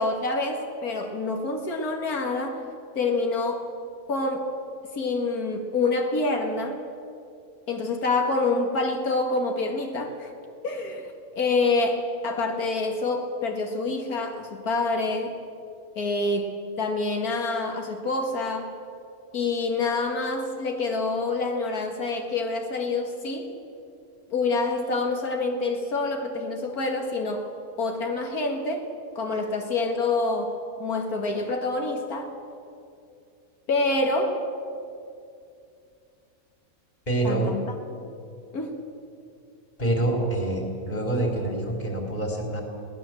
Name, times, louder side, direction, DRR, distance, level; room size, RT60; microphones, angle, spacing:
voice 1, 0.0-2.6 2.9-3.7 4.1-4.5 4.9-6.8 7.7-10.3 10.6-15.4 16.0-18.7 19.3-23.5 24.3-27.5 27.8-28.9 29.2-32.3 33.7-34.4 37.2-38.0 38.5-38.7, left 3 dB, 90° left, 3 dB, 2.3 m, -27 dB
voice 2, 37.1-37.5 39.8-42.6, right 2 dB, 30° left, 0 dB, 4.0 m, -26 dB
22.0 x 18.5 x 7.7 m, 2.5 s
omnidirectional pair, 1.5 m